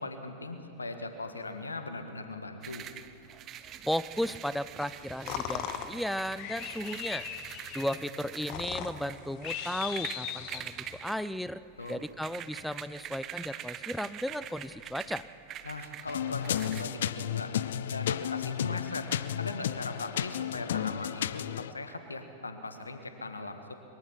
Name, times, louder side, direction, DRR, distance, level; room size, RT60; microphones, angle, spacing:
voice 1, 0.0-2.9 11.8-12.0 15.6-17.5 17.9-19.1 19.4-23.7, left 2 dB, 85° left, 7 dB, 1.7 m, -39 dB
sound 1, 2.6-16.8, right 10 dB, 35° right, 0.9 m, -44 dB
voice 2, 3.8-7.3 7.7-11.6 11.9-15.2, equal, ahead, 16 dB, 0.6 m, -35 dB
sound 2, 4.8-11.0, left 10 dB, 45° left, 1.3 m, -39 dB
sound 3, 16.1-21.7, left 10 dB, 65° left, 0.5 m, -33 dB
22.5 x 22.5 x 5.9 m, 2.6 s
figure-of-eight pair, 95°, 0 cm